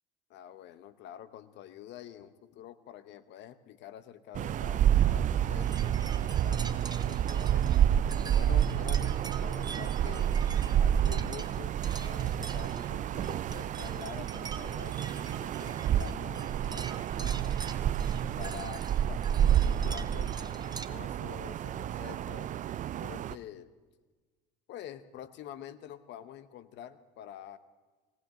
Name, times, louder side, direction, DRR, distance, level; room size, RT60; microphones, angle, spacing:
voice 1, 0.3-7.7 8.3-10.3 10.7-17.5 18.4-22.5 23.0-23.7 24.7-27.6, left 11 dB, 60° left, 13 dB, 1.0 m, -47 dB
sound 1, 4.3-23.4, right 10 dB, 40° right, 0.4 m, -29 dB
sound 2, 5.6-20.9, right 4 dB, 20° right, 0.9 m, -46 dB
19.0 x 18.5 x 3.8 m, 1.3 s
hypercardioid pair, 75°, 21 cm